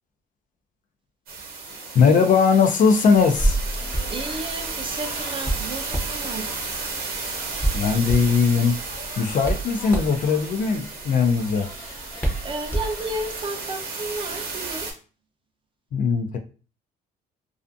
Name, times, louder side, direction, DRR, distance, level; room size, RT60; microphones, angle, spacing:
sound 1, 1.3-14.9, right 4 dB, 65° right, 0.9 m, -34 dB
sound 2, 1.7-14.8, left 3 dB, 75° left, 0.9 m, -44 dB
voice 1, 1.9-3.6 7.7-8.8 9.2-11.7 15.9-16.4, left 5 dB, 50° left, 5 dB, 0.4 m, -19 dB
Hands, 3.1-13.4, right 1 dB, 10° left, 0.7 m, -30 dB
voice 2, 4.1-6.5 12.1-14.9, right 2 dB, 30° right, 4 dB, 0.5 m, -33 dB
2.4 x 2.3 x 2.5 m, 0.37 s
cardioid pair, 110°, 17 cm